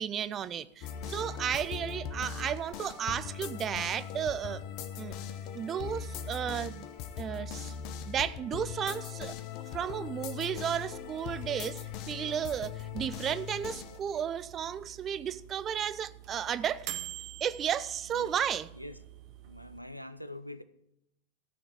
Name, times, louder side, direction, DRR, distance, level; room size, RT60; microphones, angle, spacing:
voice 1, 0.0-4.6 5.0-5.1 5.5-6.9 7.2-7.7 8.1-9.3 9.7-16.9 17.4-18.7, right 9 dB, 25° right, 0.5 m, -33 dB
sound 1, 0.8-14.0, left 8 dB, 40° left, 0.9 m, -40 dB
sound 2, 10.7-19.8, right 13 dB, 45° right, 1.0 m, -47 dB
voice 2, 19.4-20.6, left 1 dB, 90° left, 0.6 m, -44 dB
14.5 x 6.1 x 7.8 m
figure-of-eight pair, 90°, 0 cm